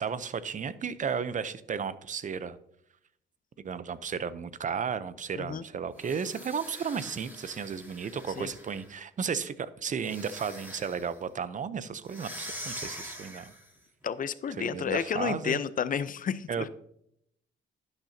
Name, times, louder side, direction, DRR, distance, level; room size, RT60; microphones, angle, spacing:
voice 1, 0.0-2.6 3.6-13.5 14.6-15.6 16.5-16.7, right 6 dB, 40° right, 15 dB, 0.7 m, -34 dB
sound 1, 5.9-8.9 10.0-11.2 12.1-13.8, equal, 10° right, 4.3 m, -44 dB
voice 2, 14.0-16.7, left 7 dB, 45° left, 15 dB, 0.6 m, -31 dB
11.5 x 9.0 x 2.8 m, 0.72 s
cardioid pair, 90°, 20 cm